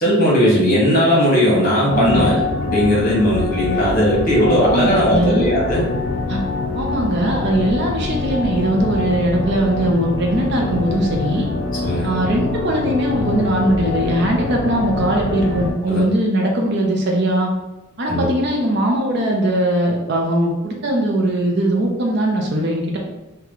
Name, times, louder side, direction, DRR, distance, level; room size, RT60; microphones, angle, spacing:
voice 1, 0.0-5.8 11.8-12.1 15.9-16.0 18.1-18.3, equal, 40° left, -5 dB, 1.2 m, -17 dB
sound 1, 1.9-15.7, left 3 dB, 55° left, 0.5 m, -24 dB
voice 2, 1.9-2.3 4.7-5.5 6.3-6.4 6.7-11.5 12.0-17.5 18.0-23.0, right 1 dB, 50° right, 0 dB, 0.6 m, -20 dB
3.1 x 2.3 x 3.7 m, 1.0 s
head